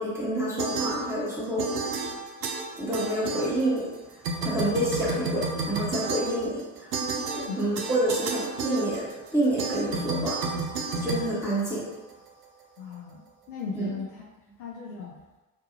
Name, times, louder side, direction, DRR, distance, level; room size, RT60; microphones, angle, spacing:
voice 1, 0.0-1.8 2.8-4.0 4.4-6.9 7.3-10.5 10.9-11.9 13.7-13.9, right 1 dB, 5° right, -7 dB, 0.9 m, -28 dB
sound 1, 0.6-1.3 1.6-3.9 4.2-12.1, right 4 dB, 75° right, 0.5 m, -32 dB
voice 2, 12.8-14.3 14.6-15.2, left 6 dB, 40° left, -3 dB, 0.5 m, -37 dB
2.5 x 2.3 x 2.9 m, 1.2 s
figure-of-eight pair, 65°, 50 cm